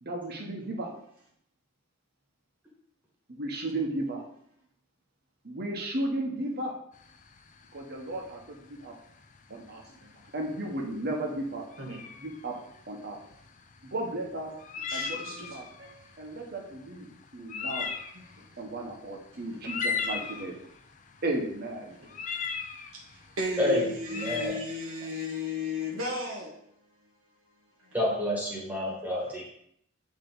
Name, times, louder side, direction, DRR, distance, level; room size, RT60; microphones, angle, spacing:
voice 1, 0.0-0.9 3.3-4.2 5.4-6.7 7.7-8.9 9.5-9.8 10.3-11.7 12.2-12.5 12.9-13.2 13.9-14.5 14.9-15.2 15.5-15.6 16.2-17.1 17.3-17.9 18.6-20.5 21.2-21.9, right 1 dB, 50° right, 0 dB, 1.2 m, -34 dB
sound 1, 6.9-24.5, left 5 dB, 40° left, 0.5 m, -38 dB
voice 2, 14.9-16.0 18.1-18.4 22.0-22.1 22.9-26.6, left 2 dB, 85° right, -3 dB, 1.3 m, -35 dB
voice 3, 23.6-24.6 27.9-29.5, left 1 dB, 10° right, -4 dB, 1.6 m, -29 dB
9.0 x 3.2 x 3.9 m, 0.69 s
head